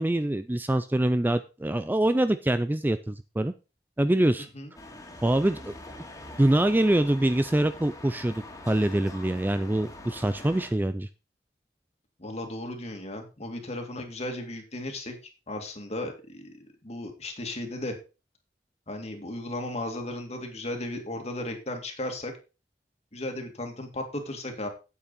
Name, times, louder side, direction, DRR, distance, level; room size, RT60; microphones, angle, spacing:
voice 1, 0.0-3.5 4.0-4.5 5.2-5.7 6.4-11.1, right 1 dB, 10° right, 11 dB, 0.4 m, -24 dB
sound 1, 4.7-10.7, left 1 dB, 20° left, 2.3 m, -44 dB
voice 2, 12.2-15.2 15.5-18.0 18.9-22.3 23.1-24.7, left 1 dB, 40° left, 4 dB, 2.3 m, -35 dB
8.7 x 8.6 x 4.1 m, 0.30 s
head